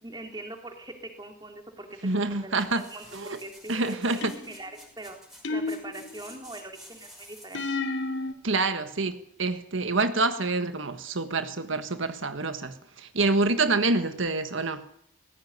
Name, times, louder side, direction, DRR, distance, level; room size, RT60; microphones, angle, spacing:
voice 1, 0.0-5.2 5.5-7.7, right 2 dB, 20° right, 3.3 m, -42 dB
voice 2, 2.0-3.4 3.7-4.3 8.4-14.9, right 3 dB, 80° right, 1.5 m, -27 dB
sound 1, 2.5-7.8 8.2-8.3, equal, ahead, 5.8 m, -51 dB
sound 2, 4.2-4.7 5.4-6.3 7.5-8.3, left 3 dB, 65° left, 2.4 m, -31 dB
19.0 x 16.5 x 9.5 m
head